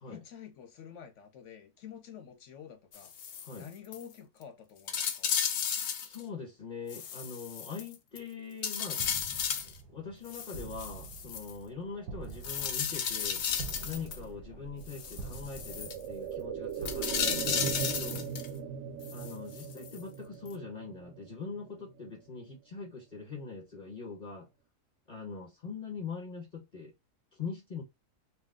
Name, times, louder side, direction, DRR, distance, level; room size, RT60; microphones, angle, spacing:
voice 1, 0.1-3.1 3.6-5.3 14.5-14.6 19.1-19.4, left 8 dB, 60° left, 0.9 m, -49 dB
sound 1, 2.9-3.6 3.9-4.0 4.4-4.5 4.9-6.2 6.9-8.2 8.6-9.7 10.3-11.5 12.4-14.2 14.9-15.9 16.8-18.5 19.0-20.0 20.5-20.6, left 8 dB, 75° left, 0.6 m, -34 dB
voice 2, 6.0-9.0 9.9-13.4 13.8-18.3 19.1-24.5 25.1-26.9 27.3-27.8, left 5 dB, 35° left, 1.1 m, -42 dB
sound 2, 8.9-18.5, right 4 dB, 85° right, 1.1 m, -47 dB
sound 3, 12.7-22.5 22.8-22.9, right 8 dB, 70° right, 0.7 m, -40 dB
2.6 x 2.2 x 3.5 m
omnidirectional pair, 1.7 m